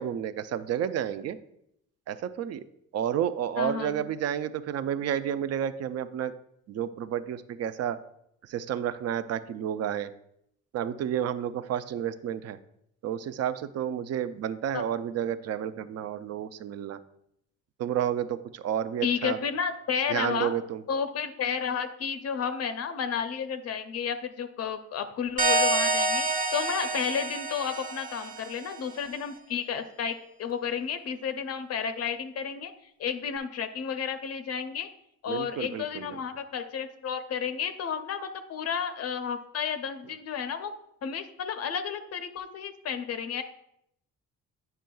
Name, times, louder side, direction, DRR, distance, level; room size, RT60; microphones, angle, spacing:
voice 1, 0.0-1.4 2.1-2.6 2.9-6.3 6.7-8.0 8.5-10.1 10.7-12.6 13.0-17.0 17.8-19.4 20.1-20.8 35.3-36.2, right 9 dB, 55° right, 13 dB, 0.5 m, -31 dB
voice 2, 3.6-4.1 14.7-14.8 19.0-20.5 20.9-32.7 33.0-34.9 35.2-40.7 41.0-43.4, left 7 dB, 55° left, 9 dB, 0.5 m, -32 dB
sound 1, 25.4-28.8, right 2 dB, 25° right, 0.7 m, -27 dB
8.9 x 5.5 x 2.3 m, 0.76 s
cardioid pair, 90°, 30 cm